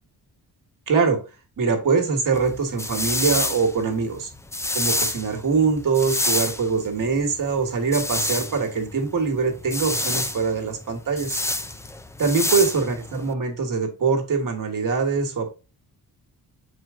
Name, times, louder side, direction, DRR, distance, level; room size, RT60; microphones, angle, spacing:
voice 1, 0.9-1.2 1.6-4.3 4.7-11.4 12.2-15.5, right 5 dB, 55° right, 3 dB, 1.5 m, -23 dB
sound 1, 2.3-13.3, left 2 dB, 10° left, 0.3 m, -28 dB
6.2 x 4.5 x 3.6 m, 0.30 s
wide cardioid pair, 150°, 39 cm